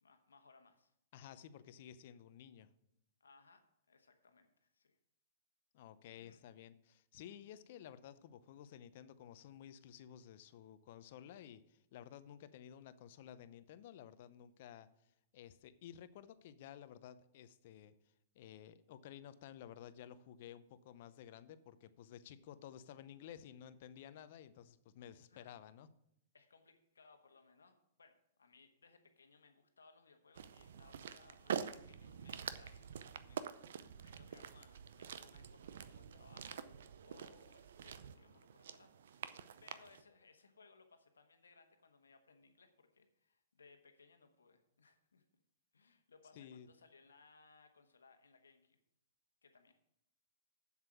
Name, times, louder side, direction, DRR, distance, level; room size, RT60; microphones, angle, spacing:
voice 1, 0.0-0.9 3.2-3.6 3.9-5.0 6.1-6.4 25.3-25.5 26.3-39.3 39.6-45.2 45.7-48.8 49.4-49.7, left 4 dB, 85° left, 7 dB, 1.3 m, -66 dB
voice 2, 1.1-2.7 5.7-14.9 15.3-17.9 18.3-25.9 46.3-46.7, left 10 dB, 55° left, 14 dB, 0.7 m, -54 dB
sound 1, 30.4-40.0, right 7 dB, 70° right, 0.6 m, -47 dB
7.5 x 7.3 x 6.1 m, 0.77 s
hypercardioid pair, 115°, 0 cm